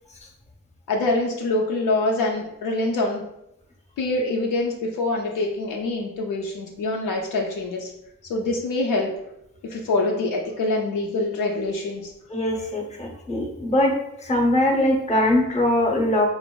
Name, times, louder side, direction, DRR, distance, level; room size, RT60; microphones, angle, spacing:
voice 1, 0.9-3.2 4.0-7.9 8.3-9.1 9.7-12.1, left 2 dB, 65° left, 0 dB, 0.5 m, -25 dB
voice 2, 12.3-13.9 14.3-16.3, left 1 dB, 20° left, 0 dB, 0.7 m, -21 dB
3.0 x 2.5 x 2.2 m, 0.83 s
supercardioid pair, 60°, 34 cm